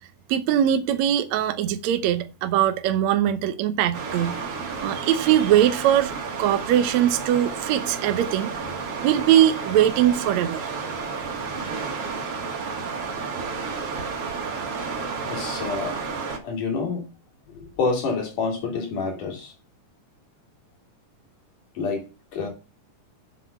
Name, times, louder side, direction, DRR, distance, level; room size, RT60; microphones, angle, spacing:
voice 1, 0.3-4.4 4.8-6.1 6.4-8.5 9.0-10.6, right 11 dB, 70° right, 1.9 m, -21 dB
sound 1, 3.9-16.4, right 5 dB, 50° right, 2.8 m, -31 dB
voice 2, 15.2-16.0 16.4-17.1 17.5-19.5 21.8-22.0 22.3-22.5, left 4 dB, 75° left, 4.4 m, -28 dB
7.7 x 7.6 x 6.9 m
omnidirectional pair, 3.7 m